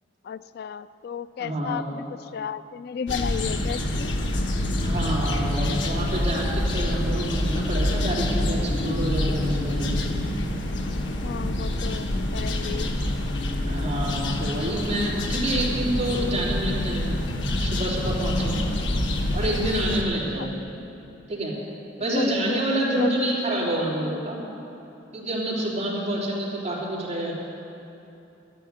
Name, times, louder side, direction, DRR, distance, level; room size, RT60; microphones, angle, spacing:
voice 1, 0.2-2.0 2.3-4.1 11.0-12.9 20.3-20.5 22.0-22.6 23.0-23.2, left 7 dB, 60° left, 15 dB, 0.3 m, -33 dB
voice 2, 1.4-1.8 4.8-10.0 13.7-17.2 17.6-18.7 19.3-20.6 21.3-21.5 22.0-24.4 25.1-27.3, right 1 dB, 35° right, -5 dB, 3.1 m, -27 dB
sound 1, 3.1-20.0, left 1 dB, 85° left, 1.3 m, -26 dB
12.0 x 9.1 x 9.2 m, 2.9 s
head